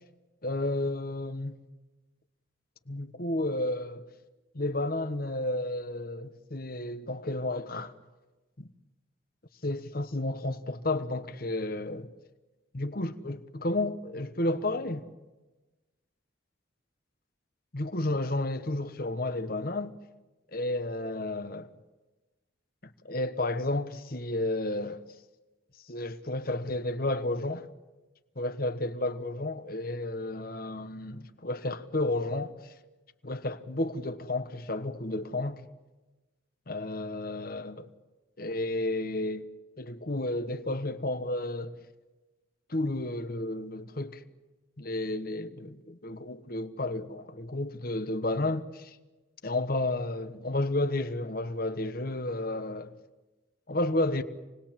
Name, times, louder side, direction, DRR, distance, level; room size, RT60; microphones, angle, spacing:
voice 1, 0.4-1.6 2.9-4.0 4.5-7.9 8.6-8.7 9.6-12.1 12.7-15.0 17.7-19.9 20.5-21.7 23.1-25.0 25.9-27.6 28.4-32.5 33.2-35.6 36.7-37.9 38.4-39.5 39.8-41.8 42.7-44.2 44.8-48.9 49.4-52.9 53.7-54.2, left 2 dB, 50° left, 1.3 m, -32 dB
28.0 x 20.0 x 7.5 m
head